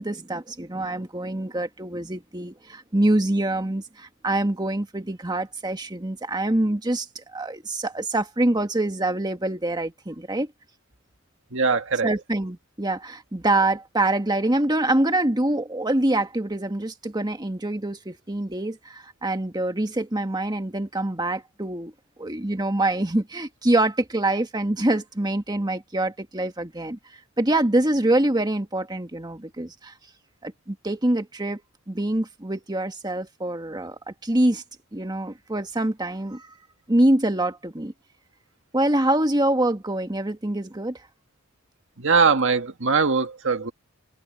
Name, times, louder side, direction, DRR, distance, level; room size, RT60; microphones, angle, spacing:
voice 1, 0.0-7.1 7.3-10.5 12.0-21.9 22.2-27.0 27.4-29.9 30.4-31.6 31.9-34.6 34.9-36.5 36.9-37.9 38.7-41.0, right 1 dB, 20° right, 1.6 m, -25 dB
voice 2, 11.5-12.1 42.0-43.7, right 4 dB, 65° right, 1.8 m, -21 dB
open air
head